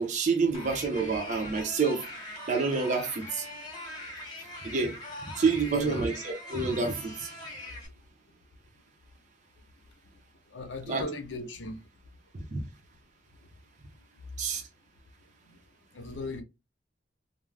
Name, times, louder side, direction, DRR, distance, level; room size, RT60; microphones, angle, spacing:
voice 1, 0.0-2.0 2.5-3.5 4.6-4.9 5.3-7.3 10.9-11.0 12.5-12.6 14.4-14.6, right 4 dB, 40° right, 0.5 m, -28 dB
sound 1, 0.5-7.9, left 1 dB, 25° left, 0.8 m, -42 dB
voice 2, 5.7-6.0 10.5-11.8 15.5-15.6 15.9-16.4, left 2 dB, 80° left, 0.7 m, -38 dB
2.4 x 2.1 x 3.2 m
head